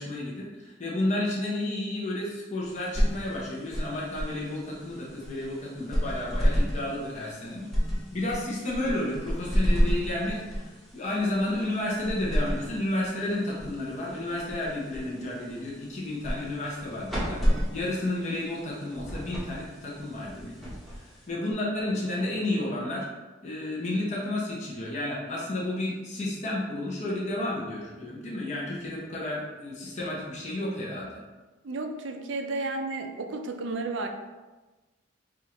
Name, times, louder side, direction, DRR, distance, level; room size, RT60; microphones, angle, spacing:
voice 1, 0.0-7.7 8.1-17.4 17.7-20.6 20.9-23.1 23.4-31.2, left 1 dB, 40° left, -5 dB, 0.8 m, -31 dB
sound 1, 2.6-21.5, equal, ahead, 0.9 m, -31 dB
voice 2, 31.6-34.1, right 3 dB, 70° right, 4 dB, 0.5 m, -32 dB
4.8 x 2.5 x 2.9 m, 1.2 s
head